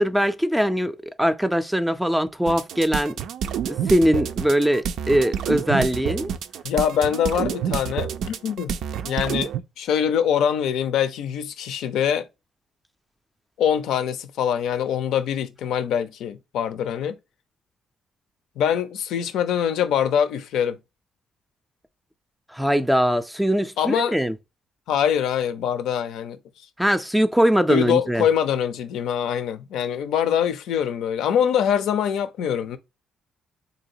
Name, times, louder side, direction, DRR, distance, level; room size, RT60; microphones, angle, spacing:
voice 1, 0.0-3.1 3.6-6.3 22.5-24.3 26.8-28.3, equal, 5° right, 0.4 m, -21 dB
sound 1, 2.5-9.6, right 8 dB, 75° right, 0.3 m, -28 dB
voice 2, 6.6-8.7 9.0-12.3 13.6-17.2 18.6-20.8 23.8-24.2 24.9-26.4 27.7-32.8, left 8 dB, 85° left, 0.5 m, -24 dB
3.9 x 2.8 x 2.7 m
cardioid pair, 90°, 0 cm